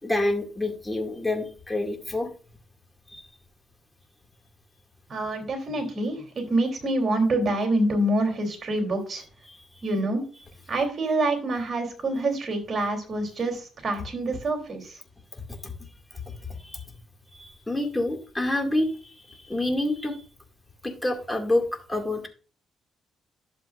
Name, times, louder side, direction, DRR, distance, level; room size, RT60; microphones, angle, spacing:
voice 1, 0.0-2.3 3.1-3.2 9.5-9.6 15.5-15.7 16.3-16.4 16.6-16.8 17.3-20.2 20.8-22.3, left 1 dB, 10° left, 3 dB, 2.1 m, -28 dB
voice 2, 5.1-9.2 9.8-10.2 10.7-14.9, right 2 dB, 45° right, 3 dB, 3.2 m, -26 dB
11.5 x 7.3 x 2.5 m, 0.38 s
cardioid pair, 90°, 0 cm